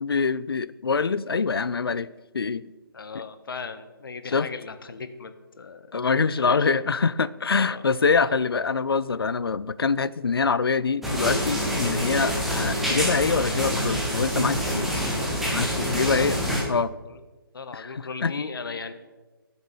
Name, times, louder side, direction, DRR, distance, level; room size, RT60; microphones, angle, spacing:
voice 1, 0.0-2.1 2.3-2.6 3.1-3.2 4.3-4.5 5.9-15.0 15.5-16.4 16.7-16.9 17.7-18.3, left 5 dB, 80° left, 18 dB, 0.5 m, -25 dB
voice 2, 2.9-5.9 6.5-6.7 7.6-7.8 16.0-16.3 17.1-17.2 17.5-18.9, left 5 dB, 65° left, 9 dB, 1.2 m, -37 dB
sound 1, 11.0-16.6, equal, ahead, 1.5 m, -26 dB
13.0 x 7.3 x 5.5 m, 1.2 s
figure-of-eight pair, 155°, 12 cm